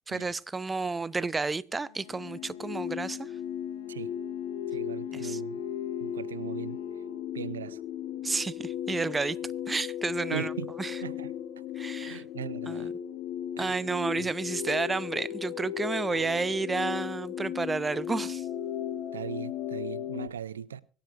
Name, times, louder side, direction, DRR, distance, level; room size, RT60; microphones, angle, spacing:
voice 1, 0.1-3.3 5.1-5.4 8.2-9.4 9.7-10.5 10.8-11.0 11.8-12.2 12.7-12.9 13.6-18.5, right 3 dB, 20° right, 0.7 m, -31 dB
Wind instrument woodwind instrument, 1.7-7.4, left 13 dB, 75° left, 1.5 m, -56 dB
sound 1, 2.1-20.3, left 10 dB, 60° left, 1.2 m, -36 dB
voice 2, 4.7-5.6 6.0-6.8 7.3-7.8 10.3-10.7 11.0-11.3 12.0-12.9 13.6-13.8 14.2-14.3 16.1-16.2 19.1-20.8, right 9 dB, 85° right, 0.5 m, -39 dB
24.5 x 10.0 x 2.5 m
hypercardioid pair, 70°, 0 cm